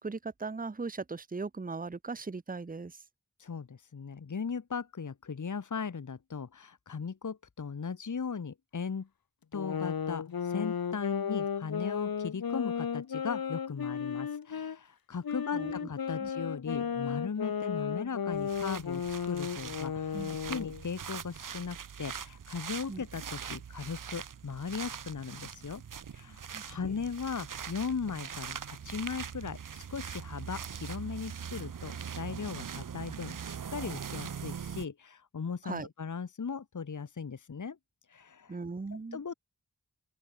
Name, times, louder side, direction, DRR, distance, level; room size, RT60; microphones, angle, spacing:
voice 1, 0.0-3.0 15.5-15.7 16.2-16.3 20.1-20.7 22.9-23.0 26.5-26.8 35.6-35.9 38.5-39.2, right 4 dB, 25° right, 0.8 m, -39 dB
voice 2, 3.4-9.1 9.5-25.8 26.1-37.8 38.1-38.6 38.9-39.3, left 5 dB, 60° left, 1.1 m, -38 dB
sound 1, 9.5-14.8 15.2-20.8, left 7 dB, 90° left, 1.0 m, -34 dB
sound 2, 18.3-34.9, right 7 dB, 65° right, 0.7 m, -42 dB
open air
wide cardioid pair, 80°, 35 cm